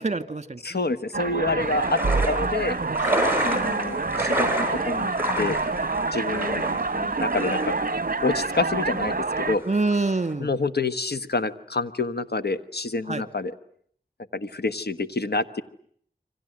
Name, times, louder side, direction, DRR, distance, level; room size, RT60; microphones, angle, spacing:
voice 1, 0.0-0.8 3.1-3.6 9.7-10.5 13.1-13.2, right 3 dB, 45° right, 11 dB, 2.2 m, -26 dB
voice 2, 0.6-2.0 2.3-2.8 3.4-5.6 6.1-7.7 8.2-9.6 10.4-13.5 14.3-15.6, left 3 dB, 80° left, 11 dB, 1.4 m, -28 dB
sound 1, 1.1-9.6, right 3 dB, 60° right, 1.1 m, -27 dB
sound 2, 1.6-10.3, right 1 dB, 10° right, 7.9 m, -30 dB
28.5 x 25.0 x 7.8 m, 0.65 s
wide cardioid pair, 45°, 17 cm